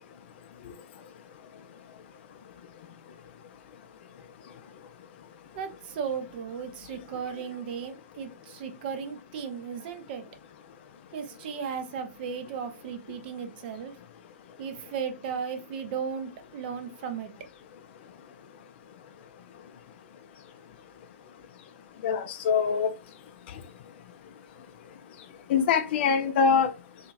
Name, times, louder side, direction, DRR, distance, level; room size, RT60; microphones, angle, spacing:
voice 1, 5.5-10.2 11.1-13.9 14.6-17.3, right 7 dB, 40° right, 0.5 m, -35 dB
voice 2, 22.0-22.9 25.5-26.7, left 6 dB, 40° left, 0.4 m, -23 dB
2.7 x 2.5 x 2.5 m
figure-of-eight pair, 120°, 9 cm